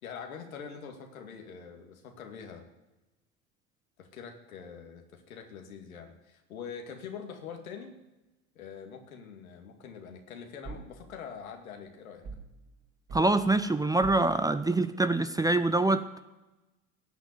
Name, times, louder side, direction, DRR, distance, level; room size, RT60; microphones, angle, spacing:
voice 1, 0.0-2.7 4.0-8.0 8.6-12.2, left 6 dB, 75° left, 4 dB, 2.3 m, -44 dB
sound 1, 10.6-11.0 12.2-12.6 13.1-13.4 14.0-14.4, right 5 dB, 50° right, 5.0 m, -42 dB
voice 2, 13.1-16.2, right 2 dB, 10° right, 11 dB, 0.7 m, -25 dB
17.0 x 6.2 x 9.7 m, 1.1 s
figure-of-eight pair, 70°, 42 cm